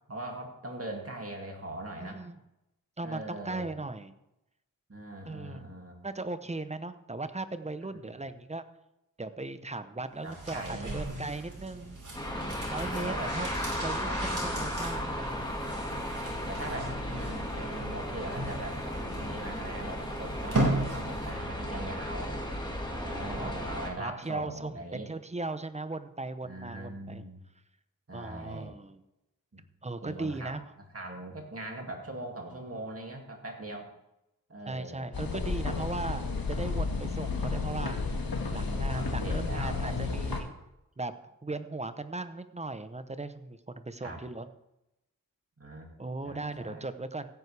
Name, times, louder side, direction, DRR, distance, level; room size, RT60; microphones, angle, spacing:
voice 1, 0.1-2.2 3.0-3.7 4.9-6.0 7.9-8.0 10.2-11.1 12.4-12.6 12.9-13.3 14.0-14.2 16.5-22.4 23.0-25.1 26.4-27.4 28.1-28.7 29.5-29.6 30.0-30.5 30.9-33.9 34.5-35.1 38.5-40.1 44.0-44.2 45.6-45.9 46.2-46.9, right 1 dB, 40° right, 1 dB, 2.3 m, -41 dB
voice 2, 2.0-2.4 3.0-4.1 5.3-5.6 6.0-8.6 9.2-12.0 12.7-13.5 13.8-15.6 22.9-23.7 24.0-27.3 28.1-29.0 29.8-30.6 34.7-38.0 38.5-40.5 41.0-44.5 46.0-47.3, right 2 dB, 20° right, 11 dB, 0.8 m, -38 dB
sound 1, 10.2-21.4 21.7-21.8, right 1 dB, 60° right, 4.8 m, -36 dB
sound 2, 12.1-23.9, left 1 dB, 10° left, 1.8 m, -35 dB
sound 3, 35.1-40.4, left 4 dB, 75° left, 1.6 m, -32 dB
16.0 x 9.4 x 3.4 m, 0.89 s
wide cardioid pair, 80°, 35 cm